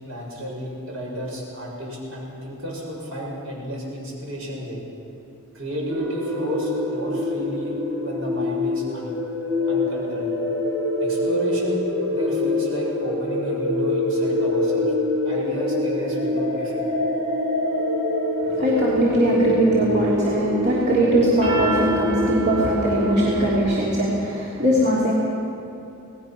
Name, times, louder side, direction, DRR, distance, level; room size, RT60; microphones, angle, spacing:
voice 1, 0.0-4.8 5.5-7.8 8.0-9.1 9.7-10.3 11.0-14.9 15.2-16.8, equal, 65° right, -3 dB, 6.7 m, -32 dB
sound 1, 5.9-23.6, left 1 dB, 90° right, 6.9 m, -25 dB
voice 2, 18.4-25.2, right 1 dB, 45° right, -7 dB, 3.1 m, -21 dB
27.0 x 19.0 x 6.0 m, 2.8 s
head